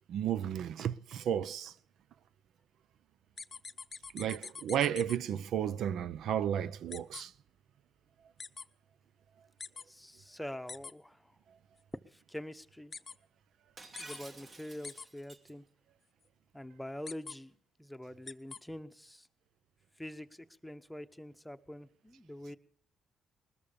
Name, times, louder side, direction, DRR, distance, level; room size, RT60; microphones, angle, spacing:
voice 1, 0.0-1.7 4.1-7.3, right 9 dB, 75° right, 0.6 m, -33 dB
sound 1, 3.4-5.2 6.9-7.2 8.4-8.6 9.6-9.8 10.7-10.9 12.9-13.1 14.0-14.2 14.8-15.1 17.1-17.4 18.3-18.6, left 5 dB, 35° left, 0.7 m, -44 dB
voice 2, 9.9-11.3 12.1-12.9 14.0-15.6 16.5-17.5 17.8-19.3 20.0-22.6, left 1 dB, 5° left, 1.0 m, -45 dB
Shatter, 13.8-15.5, right 2 dB, 40° right, 1.8 m, -51 dB
20.0 x 13.5 x 5.1 m
cardioid pair, 90°, 0 cm